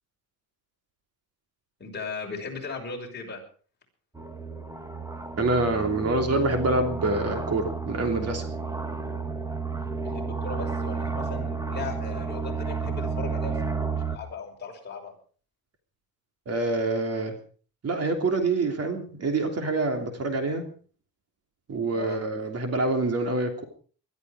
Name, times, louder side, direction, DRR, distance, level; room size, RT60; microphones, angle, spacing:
voice 1, 1.8-3.4 10.0-13.6 13.8-15.1 21.9-22.2, left 4 dB, 30° left, 0 dB, 6.0 m, -37 dB
sound 1, 4.2-14.2, right 4 dB, 10° right, 1.5 m, -31 dB
voice 2, 5.4-8.5 16.5-17.3 17.8-20.6 21.7-23.6, right 2 dB, 40° right, 5 dB, 3.1 m, -26 dB
21.0 x 12.5 x 5.0 m, 0.43 s
cardioid pair, 165°, 37 cm